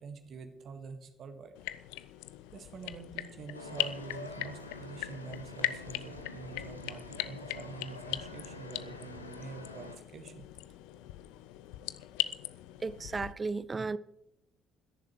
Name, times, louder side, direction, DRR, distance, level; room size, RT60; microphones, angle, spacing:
voice 1, 0.0-1.5 2.0-2.1 2.5-10.4, right 5 dB, 50° right, 1.7 m, -46 dB
sound 1, 1.5-13.3, left 16 dB, 70° left, 0.4 m, -40 dB
sound 2, 3.5-10.0, left 3 dB, 85° left, 0.8 m, -46 dB
voice 2, 12.8-14.0, right 4 dB, 30° right, 0.5 m, -34 dB
25.0 x 10.5 x 3.1 m
figure-of-eight pair, 45°, 0 cm